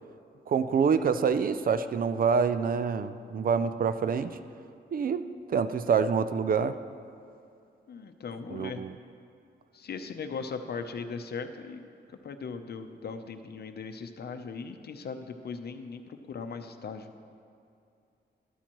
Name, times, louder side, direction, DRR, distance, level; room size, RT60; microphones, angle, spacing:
voice 1, 0.5-4.4 4.9-5.2 5.5-6.8 8.5-8.9, right 6 dB, 50° right, 11 dB, 0.4 m, -26 dB
voice 2, 7.9-8.8 9.7-11.8 12.1-17.1, left 5 dB, 60° left, 7 dB, 0.7 m, -39 dB
13.0 x 12.5 x 3.1 m, 2.6 s
wide cardioid pair, 120°, 19 cm